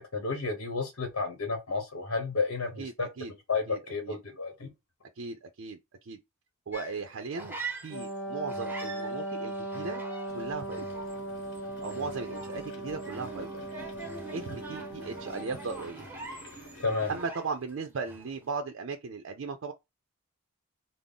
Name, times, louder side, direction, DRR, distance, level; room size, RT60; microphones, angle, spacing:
voice 1, 0.1-3.1 3.5-4.7 16.8-17.1, left 4 dB, 80° left, 1.0 m, -31 dB
voice 2, 2.8-3.3 3.7-4.2 5.2-6.2 6.7-7.6 7.8-10.0 10.3-10.8 11.8-13.5 14.3-16.1 17.1-19.7, right 4 dB, 65° right, 0.5 m, -37 dB
sound 1, 6.7-8.2 8.5-17.8 18.0-18.4, right 3 dB, 10° right, 0.7 m, -44 dB
Wind instrument woodwind instrument, 7.9-16.0, right 1 dB, 5° left, 1.6 m, -38 dB
sound 2, 10.3-17.3, left 1 dB, 60° left, 1.2 m, -50 dB
3.6 x 2.0 x 3.7 m
head